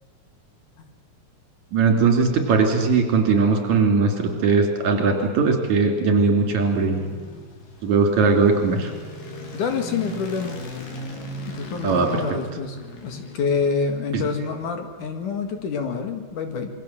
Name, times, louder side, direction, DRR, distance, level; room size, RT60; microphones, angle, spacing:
voice 1, 1.7-7.2 7.8-8.9 11.8-12.1 14.1-14.3, right 4 dB, 60° right, 3 dB, 4.5 m, -19 dB
sound 1, 6.0-14.4, left 2 dB, 85° left, 4.9 m, -38 dB
voice 2, 9.5-10.6 11.5-12.8 13.0-16.7, left 5 dB, 70° left, 6 dB, 3.5 m, -27 dB
27.5 x 22.5 x 7.6 m, 1.5 s
omnidirectional pair, 3.8 m